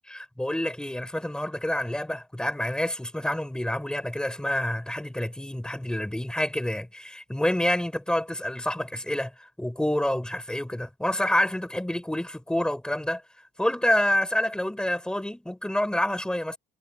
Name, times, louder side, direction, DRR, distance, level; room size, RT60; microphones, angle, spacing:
voice 1, 0.1-9.3 9.6-13.2 13.6-16.6, left 1 dB, 5° left, 5.8 m, -28 dB
cardioid pair, 110°, 17 cm